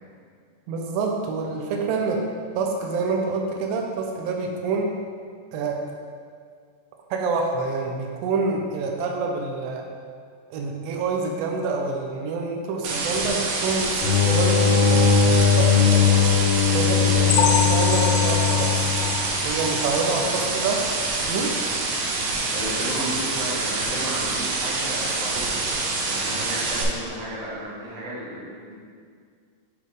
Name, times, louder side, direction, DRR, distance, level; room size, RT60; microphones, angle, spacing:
voice 1, 0.7-2.2 2.6-5.0 5.5-5.8 7.1-9.9 10.5-16.2 16.7-18.8 19.4-20.3 20.5-20.9 21.3-21.6, right 4 dB, 90° right, 1 dB, 2.4 m, -27 dB
sound 1, 12.8-26.8, right 3 dB, 75° right, 1.8 m, -26 dB
sound 2, 14.0-19.4, left 7 dB, 70° left, 1.9 m, -19 dB
sound 3, 17.3-20.9 21.3-21.5 21.8-21.9 22.4-22.5, left 6 dB, 90° left, 1.7 m, -27 dB
voice 2, 19.9-20.6 22.5-25.6 26.0-28.4 28.7-28.8, right 1 dB, 50° right, -8 dB, 2.7 m, -34 dB
8.5 x 3.4 x 5.0 m, 2.1 s
omnidirectional pair, 4.0 m